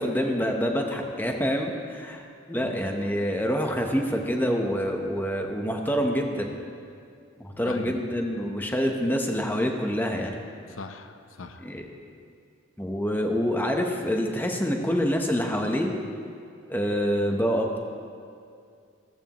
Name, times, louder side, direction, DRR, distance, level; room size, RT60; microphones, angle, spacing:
voice 1, 0.0-6.5 7.4-10.3 11.6-11.9 12.8-15.9 16.7-17.8, equal, 10° left, 2 dB, 0.9 m, -26 dB
voice 2, 2.6-3.0 7.6-8.0 10.7-11.7, left 3 dB, 85° left, 8 dB, 0.8 m, -40 dB
15.5 x 14.0 x 3.1 m, 2.4 s
head